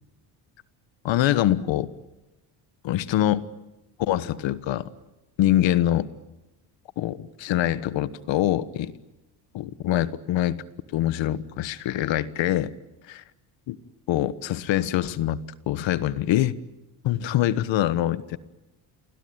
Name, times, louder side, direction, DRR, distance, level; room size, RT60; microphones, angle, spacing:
voice 1, 1.0-1.9 2.8-3.5 4.0-4.9 5.4-6.1 7.0-8.9 9.5-10.6 10.9-12.7 13.0-13.2 13.7-13.8 14.1-16.5 17.0-18.4, left 13 dB, 70° left, 16 dB, 1.4 m, -24 dB
28.0 x 22.0 x 9.6 m, 1.0 s
cardioid pair, 90°, 47 cm